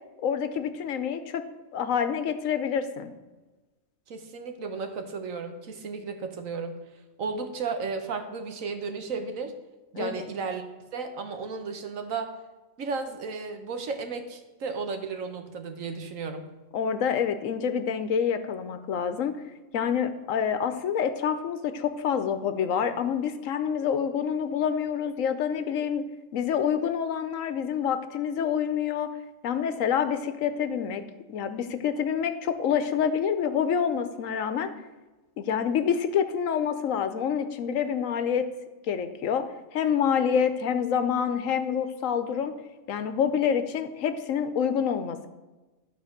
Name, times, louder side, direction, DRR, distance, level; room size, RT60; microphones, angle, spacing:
voice 1, 0.2-1.4 1.7-3.1 10.0-10.3 16.7-19.3 19.7-26.0 26.3-29.1 29.4-31.0 31.3-34.7 35.4-38.4 38.9-39.4 39.7-42.5 42.9-45.3, left 7 dB, 80° left, 10 dB, 1.1 m, -27 dB
voice 2, 4.1-6.8 7.2-9.5 9.9-10.6 10.9-12.3 12.8-16.5, right 4 dB, 80° right, 6 dB, 1.4 m, -34 dB
12.0 x 4.2 x 6.6 m, 1.2 s
omnidirectional pair, 1.4 m